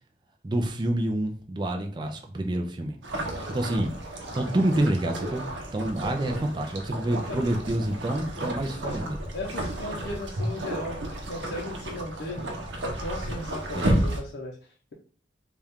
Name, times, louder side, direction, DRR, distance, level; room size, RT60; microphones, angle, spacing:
voice 1, 0.4-3.0 3.5-3.9 4.3-9.2 13.7-14.1, right 1 dB, 25° right, 0.4 m, -28 dB
sound 1, 3.0-14.2, right 1 dB, 75° right, 0.8 m, -32 dB
voice 2, 9.3-11.0 11.3-12.5 13.0-14.6, left 1 dB, 70° left, 0.7 m, -36 dB
4.1 x 2.4 x 3.5 m
head